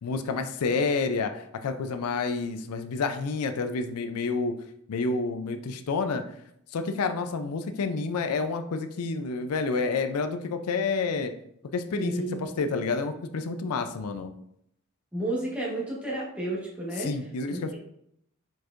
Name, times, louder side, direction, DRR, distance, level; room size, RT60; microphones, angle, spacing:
voice 1, 0.0-4.6 4.9-6.2 6.7-11.3 11.7-12.1 12.4-14.3 17.0-17.7, left 4 dB, 85° left, 8 dB, 0.4 m, -29 dB
voice 2, 11.9-12.3 15.1-17.2 17.5-17.8, right 1 dB, 5° right, -5 dB, 1.2 m, -31 dB
4.5 x 4.4 x 2.5 m, 0.73 s
head